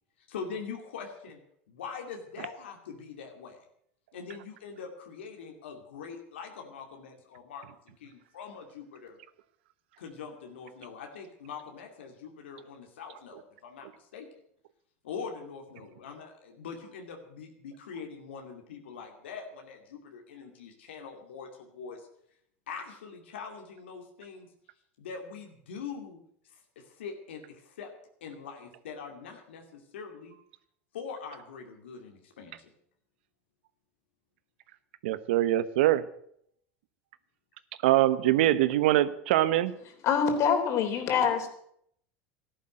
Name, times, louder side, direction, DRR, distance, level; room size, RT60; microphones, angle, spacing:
voice 1, 0.3-1.4 1.7-3.6 4.1-7.7 8.0-9.2 10.0-14.3 15.0-22.1 22.7-24.5 25.0-26.2 26.5-27.9 28.2-30.3 30.9-32.7, left 6 dB, 90° left, 2 dB, 2.5 m, -43 dB
voice 2, 35.0-36.0 37.8-39.7, right 14 dB, 80° right, 15 dB, 1.0 m, -23 dB
voice 3, 40.0-41.5, left 7 dB, 55° left, 6 dB, 3.5 m, -25 dB
13.5 x 11.5 x 7.8 m, 0.68 s
hypercardioid pair, 95°, 6 cm